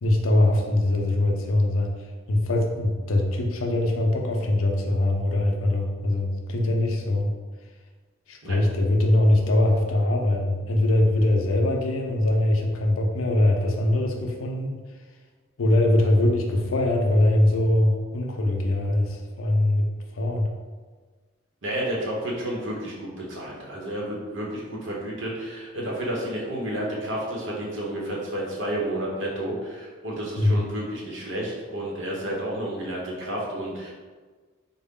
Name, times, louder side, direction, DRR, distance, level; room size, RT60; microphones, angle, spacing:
voice 1, 0.0-1.9 2.3-7.3 8.3-14.8 15.6-19.9 20.1-20.5 30.4-30.6, left 1 dB, 75° left, 2 dB, 0.5 m, -22 dB
voice 2, 21.6-33.9, right 1 dB, 60° right, -3 dB, 0.9 m, -31 dB
3.9 x 2.1 x 3.6 m, 1.4 s
head